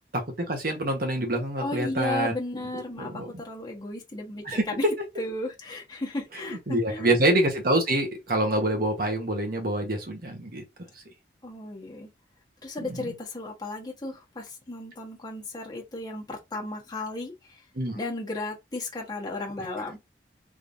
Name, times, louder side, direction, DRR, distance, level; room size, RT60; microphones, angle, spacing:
voice 1, 0.1-2.3 3.0-3.4 4.4-4.7 6.5-10.6 12.9-13.1 17.7-18.0, right 1 dB, 55° right, 1.2 m, -26 dB
voice 2, 1.6-4.8 5.2-7.2 11.4-12.1 12.6-17.6 17.9-20.0, left 2 dB, 25° left, 1.2 m, -34 dB
3.6 x 3.2 x 2.6 m
head